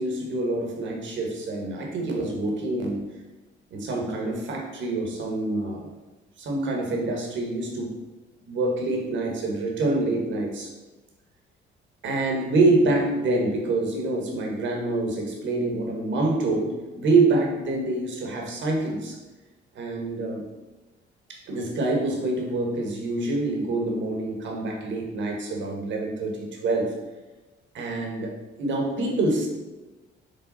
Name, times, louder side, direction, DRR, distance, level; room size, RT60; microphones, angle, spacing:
voice 1, 0.0-3.0 3.7-5.9 6.4-7.9 8.5-10.7 12.0-19.2 19.7-20.4 21.3-26.9 27.7-28.3 28.6-29.5, right 2 dB, 70° right, 1 dB, 1.5 m, -26 dB
5.5 x 3.5 x 5.5 m, 1.1 s
cardioid pair, 90°, 20 cm